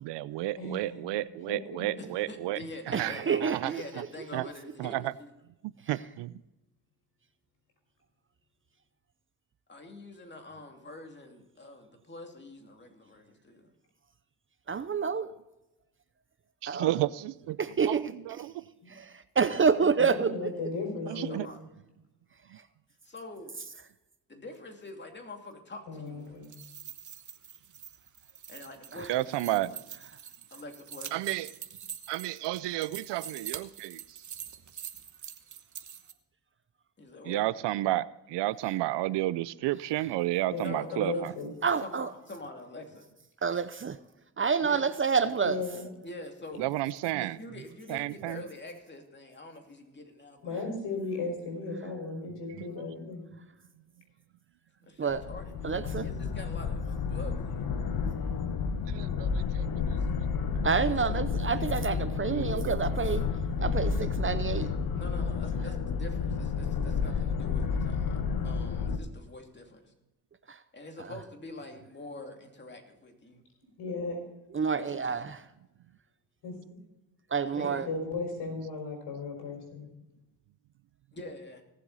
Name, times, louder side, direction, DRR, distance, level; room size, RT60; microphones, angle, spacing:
voice 1, 0.0-2.6 2.9-3.7 4.3-4.4 4.8-5.0 5.9-6.3 16.6-17.1 17.9-18.5 21.1-21.5 29.1-29.7 31.1-31.5 32.1-34.0 37.3-41.3 46.6-47.4 47.9-48.4 58.9-59.9 62.2-62.8, right 16 dB, 80° right, 0.6 m, -31 dB
voice 2, 0.6-2.0 18.8-18.9 20.0-21.5 25.9-26.5 40.5-41.5 45.4-45.9 50.4-53.2 73.8-74.2 76.4-76.5 77.5-79.9, left 3 dB, 75° left, 5.4 m, -36 dB
voice 3, 2.0-5.3 9.7-13.7 19.5-19.9 21.1-21.6 23.0-23.6 24.3-26.4 28.5-29.8 30.5-31.1 37.0-37.4 40.6-41.3 41.8-43.1 44.6-44.8 46.0-46.8 47.2-50.6 54.8-57.7 60.8-61.2 64.9-69.9 70.7-73.4 74.7-75.1 77.5-78.0 81.1-81.6, left 2 dB, 25° left, 2.7 m, -45 dB
voice 4, 2.9-4.1 14.7-15.3 16.7-17.0 17.8-18.5 18.9-20.5 28.9-29.1 41.6-42.1 43.4-44.0 44.4-45.6 55.0-55.2 55.6-56.1 60.6-63.3 63.6-65.0 70.5-70.6 71.0-71.1 74.5-75.4 77.3-77.9, right 5 dB, 30° right, 0.6 m, -28 dB
sound 1, 26.3-36.1, right 8 dB, 45° right, 1.1 m, -45 dB
sound 2, 55.1-69.0, left 5 dB, 55° left, 1.4 m, -31 dB
18.0 x 7.8 x 4.1 m
cardioid pair, 75°, 42 cm